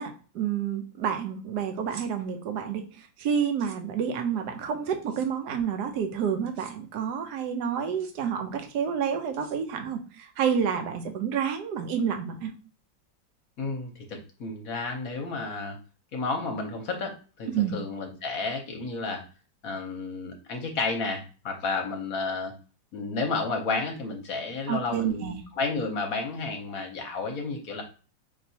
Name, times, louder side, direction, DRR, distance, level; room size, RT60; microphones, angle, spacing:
voice 1, 0.0-12.5 17.5-17.7 24.7-25.4, right 7 dB, 65° right, 6 dB, 1.2 m, -29 dB
sound 1, 1.8-2.1 3.4-3.8 5.0-5.3 6.4-6.7 7.8-8.1 9.3-9.9, right 6 dB, 90° right, 1.6 m, -48 dB
voice 2, 13.6-15.8 16.1-19.2 19.6-22.5 22.9-27.8, left 3 dB, 60° left, 3 dB, 1.0 m, -31 dB
5.4 x 2.9 x 2.7 m, 0.36 s
omnidirectional pair, 2.0 m